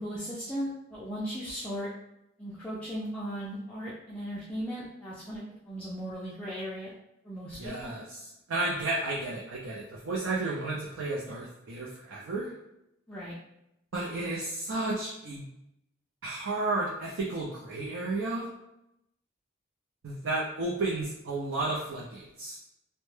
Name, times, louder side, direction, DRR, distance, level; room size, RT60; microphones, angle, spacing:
voice 1, 0.0-1.9 2.4-6.9 7.2-7.9 13.1-13.3, equal, 5° left, -8 dB, 0.3 m, -37 dB
voice 2, 7.5-12.5 13.9-15.4 16.2-18.5 20.0-22.6, right 2 dB, 90° right, -4 dB, 0.5 m, -32 dB
2.1 x 2.0 x 3.1 m, 0.85 s
head